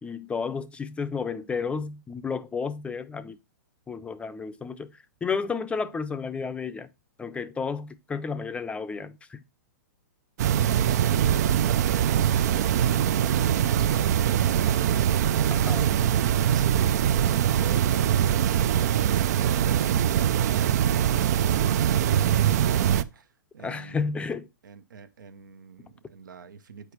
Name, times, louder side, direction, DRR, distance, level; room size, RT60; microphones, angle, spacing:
voice 1, 0.0-3.4 3.9-6.9 7.2-9.4 15.5-15.9 23.6-24.5, left 5 dB, 10° left, 0.5 m, -32 dB
sound 1, 10.4-23.0, right 10 dB, 60° right, 0.4 m, -23 dB
voice 2, 10.4-16.0 16.5-23.3 23.5-24.2 24.6-26.9, right 7 dB, 80° right, 0.8 m, -42 dB
8.0 x 4.9 x 3.0 m
hypercardioid pair, 120°, 10 cm